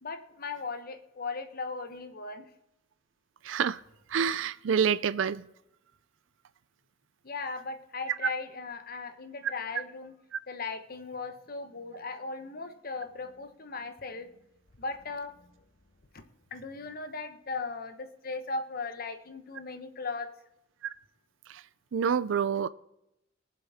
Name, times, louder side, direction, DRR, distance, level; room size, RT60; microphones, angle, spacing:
voice 1, 0.0-2.5 7.2-10.1 10.5-14.3 14.8-15.5 16.1-16.2 16.5-20.3, left 4 dB, 50° left, 1.1 m, -38 dB
voice 2, 3.4-3.8 4.1-5.4 8.2-8.3 10.3-10.4 21.5-21.6 21.9-22.7, right 7 dB, 70° right, 0.4 m, -27 dB
20.5 x 7.6 x 3.6 m
head